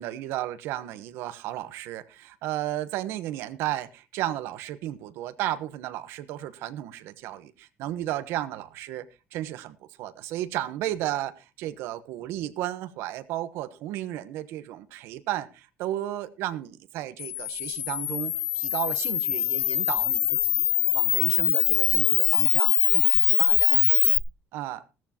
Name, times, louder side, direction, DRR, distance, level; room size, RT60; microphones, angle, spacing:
voice 1, 0.0-20.6 20.9-23.8 24.5-24.8, right 13 dB, 70° right, 1.0 m, -34 dB
Camera, 17.2-24.2, left 15 dB, 65° left, 1.0 m, -23 dB
16.0 x 13.5 x 2.9 m
cardioid pair, 175°, 4 cm